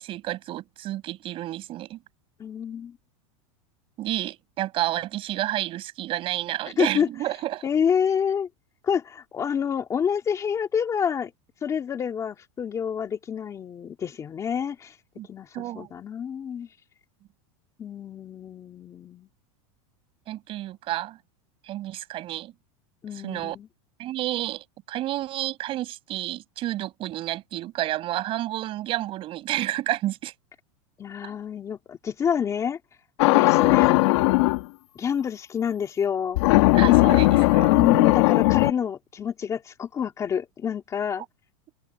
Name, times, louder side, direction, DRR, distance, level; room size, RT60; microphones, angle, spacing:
voice 1, 0.0-2.0 4.0-7.7 15.2-15.3 15.5-15.9 20.3-21.2 21.6-22.5 23.1-23.6 24.0-30.3 33.3-33.5 36.7-37.7, right 14 dB, 30° right, 7.5 m, -30 dB
voice 2, 2.4-3.0 6.8-7.1 7.6-8.5 8.8-11.3 11.6-15.0 15.3-16.7 17.8-19.3 23.0-23.7 31.0-32.8 33.4-34.0 34.9-36.4 37.7-41.2, left 7 dB, 20° left, 2.7 m, -28 dB
sound 1, 33.2-34.6 36.4-38.7, left 21 dB, 55° left, 2.0 m, -18 dB
open air
supercardioid pair, 160°, 17 cm